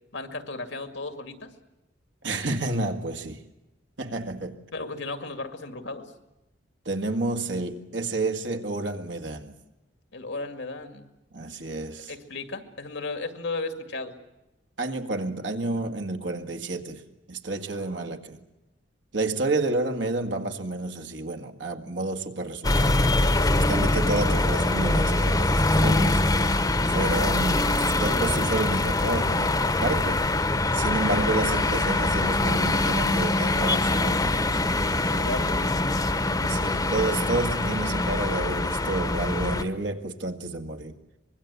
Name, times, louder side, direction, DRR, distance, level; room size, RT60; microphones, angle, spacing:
voice 1, 0.1-1.5 4.7-6.1 10.1-11.1 12.1-14.1 35.1-35.9, left 3 dB, 80° left, 2.2 m, -35 dB
voice 2, 2.2-3.4 4.0-4.6 6.9-9.6 11.3-12.1 14.8-17.0 17.3-18.4 19.1-23.0 23.4-26.2 26.9-30.3 30.7-34.3 36.4-41.0, right 2 dB, 75° right, 1.9 m, -30 dB
sound 1, 22.6-39.6, left 2 dB, 20° left, 1.0 m, -23 dB
24.5 x 21.5 x 8.4 m
head